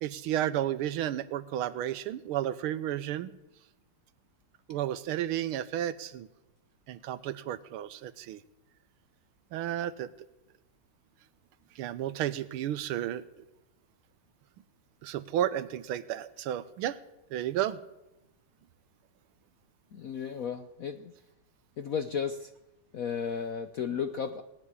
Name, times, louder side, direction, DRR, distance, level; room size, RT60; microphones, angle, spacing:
voice 1, 0.0-3.3 4.7-6.3 6.9-8.4 9.5-10.1 11.8-13.2 15.0-17.0 17.3-17.8, right 11 dB, 90° right, 15 dB, 1.6 m, -32 dB
voice 2, 19.9-21.1 21.8-22.5 22.9-24.4, left 7 dB, 65° left, 9 dB, 0.8 m, -34 dB
18.5 x 7.3 x 9.8 m, 0.93 s
omnidirectional pair, 2.3 m